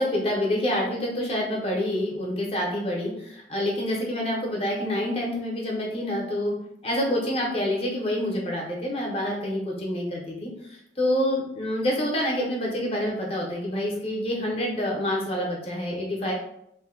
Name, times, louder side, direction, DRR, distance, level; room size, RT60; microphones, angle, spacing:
voice 1, 0.0-6.5 6.8-16.3, left 1 dB, 35° left, -2 dB, 0.7 m, -27 dB
2.6 x 2.1 x 3.6 m, 0.76 s
head